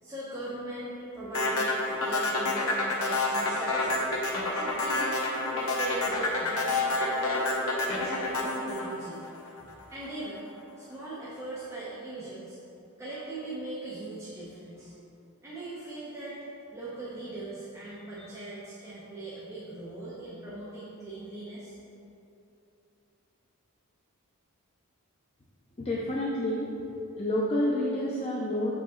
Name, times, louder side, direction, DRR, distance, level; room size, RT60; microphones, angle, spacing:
voice 1, 0.0-1.8 2.0-4.1 4.5-5.1 5.5-9.2 9.5-10.4 10.8-12.6 13.0-14.9 15.4-16.5 16.7-21.8, right 2 dB, 15° right, -10 dB, 0.9 m, -40 dB
sound 1, 1.3-9.7, left 2 dB, 65° left, 1.1 m, -28 dB
voice 2, 25.8-26.7 27.2-28.7, left 1 dB, 25° left, -5 dB, 0.6 m, -28 dB
6.7 x 5.0 x 3.7 m, 2.9 s
head